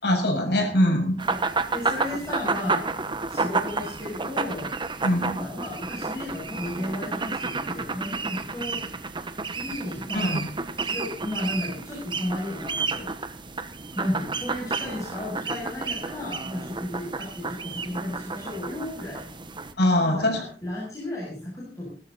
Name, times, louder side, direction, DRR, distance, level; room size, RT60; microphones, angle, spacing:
voice 1, 0.0-1.2 5.0-5.3 10.1-10.5 19.8-20.4, left 1 dB, 70° left, 2 dB, 7.0 m, -22 dB
voice 2, 1.2-2.8 3.3-4.7 5.4-8.8 9.5-10.3 10.8-13.1 13.9-19.4 20.1-21.9, left 1 dB, 20° left, -6 dB, 7.1 m, -34 dB
sound 1, 1.2-19.7, right 4 dB, 25° right, 1.2 m, -31 dB
20.5 x 13.0 x 4.1 m, 0.42 s
head